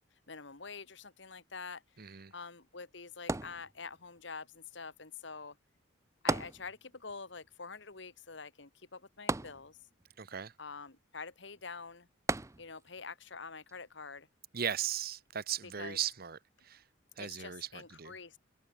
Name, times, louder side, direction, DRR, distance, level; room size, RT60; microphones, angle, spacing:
voice 1, 0.3-5.6 6.2-9.8 10.6-12.1 12.6-14.3 15.8-16.0 17.2-18.4, left 4 dB, 65° left, 1.7 m, -46 dB
voice 2, 2.0-2.3 10.2-10.5 14.5-16.8 17.2-18.2, right 9 dB, 50° right, 0.9 m, -38 dB
sound 1, 3.3-4.2 6.3-7.1 7.4-7.5 9.3-10.1 12.3-13.0 13.7-13.8, right 2 dB, 15° right, 0.6 m, -35 dB
head